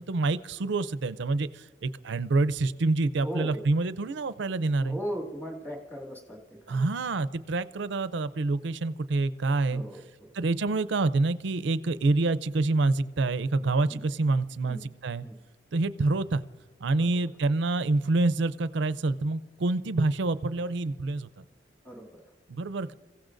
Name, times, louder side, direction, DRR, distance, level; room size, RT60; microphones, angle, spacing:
voice 1, 0.0-5.0 6.7-9.8 10.3-15.2 15.7-16.4 16.8-21.4 22.5-22.9, right 3 dB, 65° right, 14 dB, 0.5 m, -27 dB
voice 2, 3.2-3.6 4.8-6.9 9.7-10.3 13.9-14.0 14.6-14.8 15.2-15.3 17.0-17.1 21.8-22.2, equal, 10° left, 0 dB, 2.3 m, -38 dB
29.0 x 16.0 x 2.6 m, 1.3 s
head